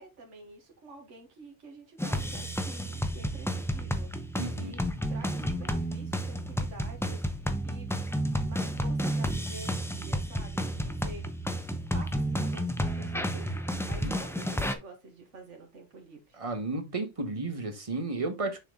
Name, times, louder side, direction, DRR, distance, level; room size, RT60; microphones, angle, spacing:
voice 1, 0.0-7.9 8.4-16.4, right 3 dB, 80° right, 1.9 m, -49 dB
sound 1, 2.0-14.7, equal, 5° left, 0.6 m, -31 dB
voice 2, 4.4-4.7 14.0-14.2 16.4-18.6, right 3 dB, 30° right, 1.2 m, -33 dB
6.7 x 4.4 x 3.7 m
omnidirectional pair, 1.2 m